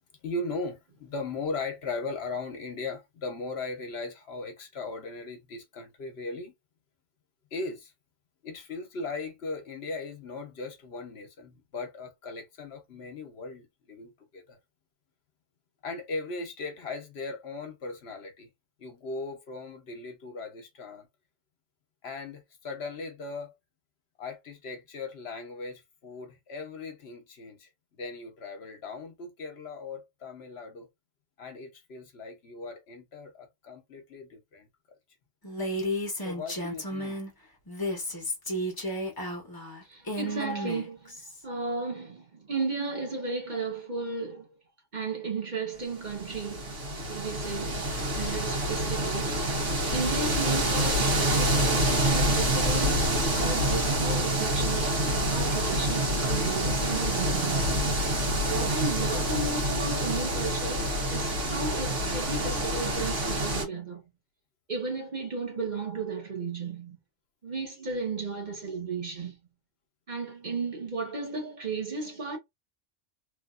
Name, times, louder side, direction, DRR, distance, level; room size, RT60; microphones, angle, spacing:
voice 1, 0.2-6.5 7.5-7.9 8.4-14.6 15.8-18.5 18.8-21.1 22.0-23.5 24.2-30.9 31.4-35.0 36.2-37.2, left 3 dB, 60° left, 1.2 m, -38 dB
Female speech woman speaking, 35.4-37.3 37.7-41.4, equal, 20° left, 0.9 m, -33 dB
voice 2, 39.9-41.1 41.4-44.5 44.9-46.8 47.1-47.9 48.1-49.4 49.9-57.8 58.4-64.0 64.7-67.0 67.4-69.4 70.1-72.4, right 4 dB, 40° right, 1.2 m, -34 dB
sound 1, 46.1-63.6, right 1 dB, 80° right, 1.6 m, -27 dB
3.4 x 2.6 x 2.4 m
omnidirectional pair, 1.2 m